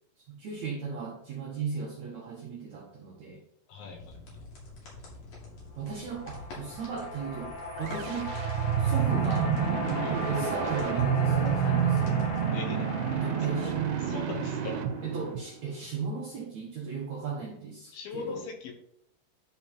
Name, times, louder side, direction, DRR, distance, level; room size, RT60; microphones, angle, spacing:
voice 1, 0.3-3.4 5.8-7.5 7.8-8.3 8.8-12.3 13.1-13.7 15.0-18.4, right 5 dB, 65° right, -3 dB, 1.9 m, -36 dB
voice 2, 3.7-4.3 10.0-10.2 12.5-12.9 13.5-13.7 14.0-14.8 17.9-18.7, left 5 dB, 70° left, 3 dB, 2.7 m, -39 dB
sound 1, 3.9-12.4, left 2 dB, 50° left, 3.6 m, -47 dB
sound 2, 5.9-15.4, left 2 dB, 85° left, 4.0 m, -38 dB
sound 3, 7.7-15.9, right 8 dB, 85° right, 2.8 m, -29 dB
11.0 x 4.3 x 4.4 m, 0.72 s
omnidirectional pair, 4.8 m